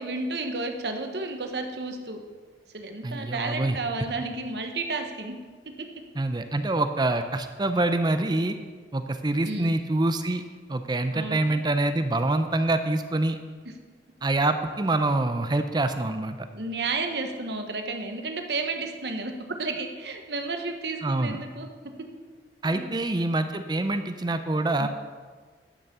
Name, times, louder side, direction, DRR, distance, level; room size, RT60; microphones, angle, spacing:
voice 1, 0.0-2.2 2.7-5.3 5.8-5.9 9.4-9.8 11.1-11.6 16.5-21.7 22.6-22.9 23.9-24.0 24.8-24.9, right 3 dB, 65° right, 4 dB, 1.2 m, -32 dB
voice 2, 3.0-3.8 6.2-8.6 8.9-10.4 10.7-13.4 14.2-16.5 21.0-21.4 22.6-24.9, right 2 dB, 25° right, 9 dB, 0.5 m, -25 dB
12.0 x 6.2 x 6.8 m, 1.5 s
head